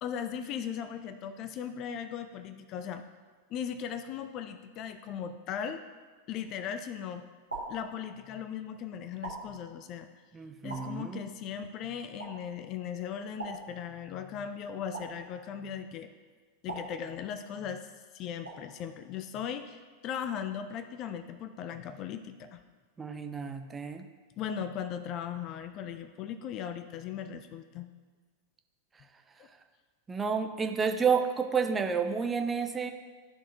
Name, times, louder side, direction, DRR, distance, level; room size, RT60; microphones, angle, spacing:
voice 1, 0.0-3.0 3.5-5.8 6.3-7.2 7.7-10.1 10.6-16.1 16.6-17.9 18.1-22.6 24.4-27.9 29.4-29.5, left 8 dB, 35° left, 10 dB, 0.4 m, -38 dB
sound 1, 6.4-6.8 7.5-8.5 9.2-10.1 10.7-11.5 12.2-12.8 13.4-14.3 14.9-15.8 16.7-17.6 18.4-19.0, right 3 dB, 80° right, 1.7 m, -44 dB
voice 2, 10.3-11.2 23.0-24.1 30.1-32.9, right 6 dB, 15° right, 6 dB, 0.5 m, -30 dB
12.5 x 4.2 x 2.7 m, 1.5 s
figure-of-eight pair, 90°, 0 cm